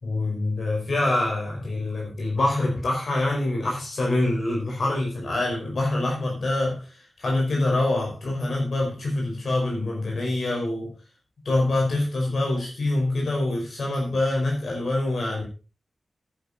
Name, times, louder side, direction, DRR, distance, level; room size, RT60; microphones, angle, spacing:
voice 1, 0.0-10.9 11.5-15.4, left 2 dB, 65° left, -1 dB, 5.3 m, -25 dB
10.5 x 10.5 x 4.3 m, 0.34 s
wide cardioid pair, 135°, 0 cm